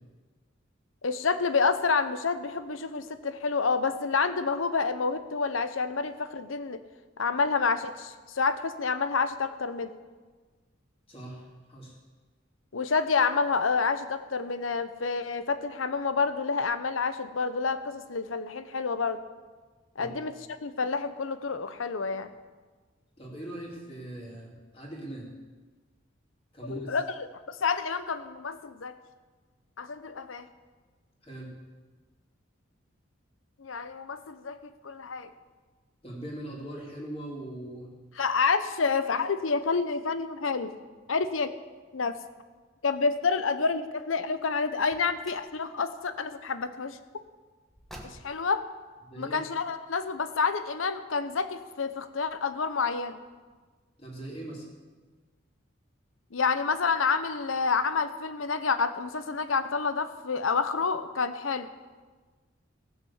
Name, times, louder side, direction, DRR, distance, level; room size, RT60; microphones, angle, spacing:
voice 1, 1.0-6.8 7.2-9.9 12.7-19.2 20.0-20.3 20.6-22.3 26.7-27.0 27.5-29.0 29.8-30.5 33.6-35.3 38.2-40.8 41.1-41.5 41.9-42.2 42.8-47.2 48.0-48.7 49.2-53.2 56.3-61.7, left 4 dB, 90° left, 12 dB, 0.8 m, -28 dB
voice 2, 11.1-11.9 20.0-20.1 23.2-25.3 26.5-27.0 31.2-31.5 36.0-37.9 49.0-49.4 54.0-54.6, right 1 dB, 30° left, -3 dB, 3.0 m, -40 dB
Car, 44.8-45.6 47.7-48.6, equal, ahead, 1.3 m, -48 dB
16.0 x 6.8 x 7.2 m, 1.4 s
head